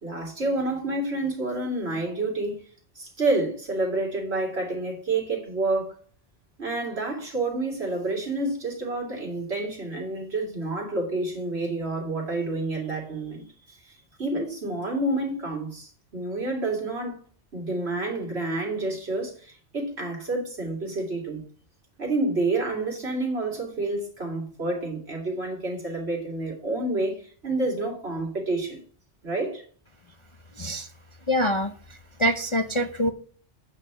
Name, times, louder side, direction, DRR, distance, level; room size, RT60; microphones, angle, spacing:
voice 1, 0.0-2.5 3.0-6.0 6.6-17.2 17.5-21.4 22.0-28.8 29.2-29.6, right 2 dB, 60° right, 2.8 m, -29 dB
voice 2, 30.6-30.9 31.3-33.1, equal, 35° left, 0.6 m, -25 dB
9.0 x 4.3 x 6.7 m
omnidirectional pair, 1.2 m